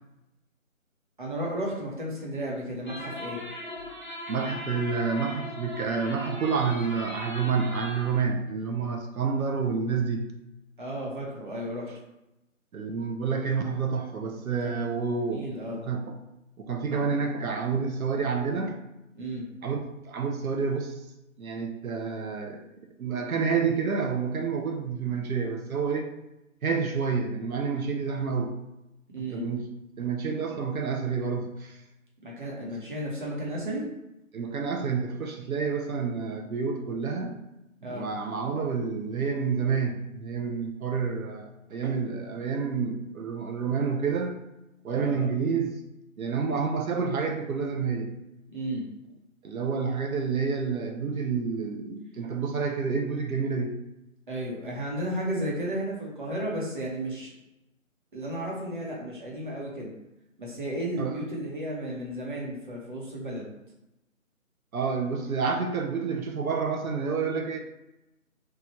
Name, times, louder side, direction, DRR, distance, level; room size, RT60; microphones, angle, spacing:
voice 1, 1.2-3.4 10.8-11.9 14.6-14.9 15.3-15.9 19.1-19.5 29.1-29.5 32.2-33.8 37.8-38.1 44.9-45.3 48.5-48.8 54.3-57.3 58.1-59.9 60.4-63.5, right 1 dB, 35° right, -4 dB, 0.8 m, -33 dB
sound 1, 2.9-8.2, left 2 dB, 35° left, 0.6 m, -38 dB
voice 2, 4.3-10.3 12.7-15.5 15.7-16.2 16.6-18.8 19.6-20.9 21.4-22.6 23.0-26.1 26.6-28.6 29.2-29.7 30.0-31.8 34.3-37.3 37.8-44.4 44.8-45.8 46.2-48.1 49.4-53.8 61.0-61.2 64.7-67.6, right 5 dB, 90° right, 3 dB, 0.6 m, -29 dB
3.0 x 2.3 x 2.9 m, 0.93 s
figure-of-eight pair, 165°, 41 cm